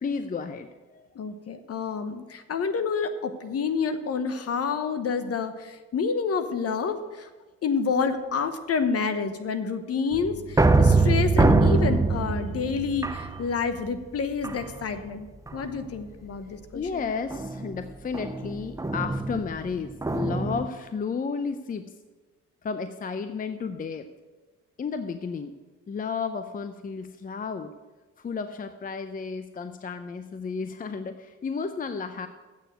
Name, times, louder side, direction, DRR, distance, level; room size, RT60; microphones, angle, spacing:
voice 1, 0.0-1.0 16.7-21.9 22.6-24.1 24.8-25.5 25.9-27.7 28.2-32.3, left 5 dB, 30° left, 10 dB, 0.5 m, -32 dB
voice 2, 1.2-7.3 7.6-15.3 15.5-16.8, left 5 dB, 50° left, 10 dB, 1.0 m, -28 dB
sound 1, 10.1-13.9 14.4-15.0 15.5-15.9 17.3-20.7, right 3 dB, 10° right, 0.6 m, -23 dB
8.1 x 6.9 x 7.8 m, 1.3 s
cardioid pair, 90°, 30 cm